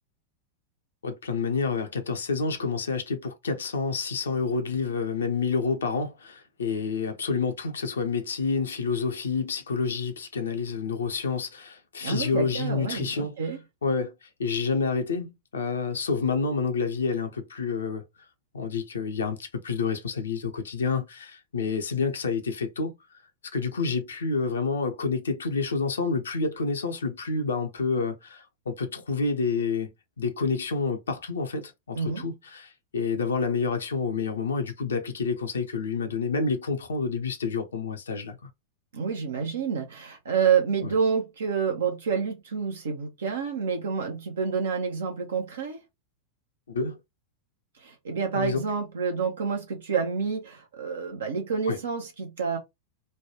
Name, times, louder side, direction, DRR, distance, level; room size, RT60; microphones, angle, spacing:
voice 1, 1.0-13.3 13.8-18.0 18.5-23.0 23.5-29.9 30.2-38.4 40.8-40.9 46.7-47.0 48.3-48.6 51.7-51.8, left 4 dB, 70° left, 0.5 m, -28 dB
voice 2, 12.0-13.6 31.9-32.3 38.9-45.8 47.8-52.6, right 6 dB, 65° right, 0.6 m, -28 dB
3.2 x 2.2 x 2.8 m
figure-of-eight pair, 90°, 0 cm